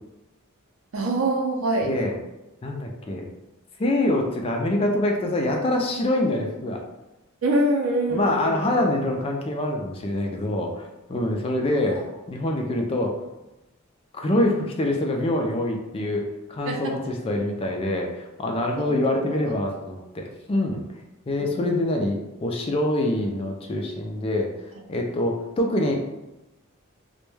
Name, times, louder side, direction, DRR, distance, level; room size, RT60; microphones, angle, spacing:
voice 1, 0.9-1.9 7.4-8.6 11.9-12.0 16.7-16.9 18.7-18.8 19.3-19.4 21.5-21.8, right 1 dB, 75° right, 2 dB, 0.5 m, -24 dB
voice 2, 1.8-2.2 2.6-3.3 3.8-6.8 8.1-10.8 11.1-13.1 14.1-20.8 21.3-24.5 24.9-25.9, left 1 dB, 25° left, 1 dB, 0.3 m, -25 dB
2.2 x 2.1 x 3.0 m, 0.98 s
head